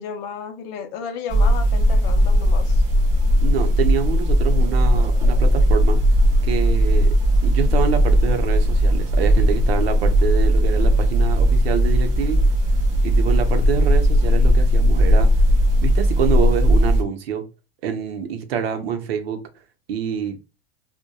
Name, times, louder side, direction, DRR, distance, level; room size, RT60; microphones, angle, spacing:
voice 1, 0.0-2.8, left 6 dB, 35° left, 0.4 m, -33 dB
sound 1, 1.3-17.0, equal, 25° right, 0.5 m, -17 dB
voice 2, 3.4-6.0 6.4-7.1 7.4-12.4 13.0-15.3 15.8-17.4 17.8-19.4 19.9-20.4, right 8 dB, 90° right, 0.6 m, -26 dB
2.7 x 2.1 x 2.2 m
supercardioid pair, 140°, 30 cm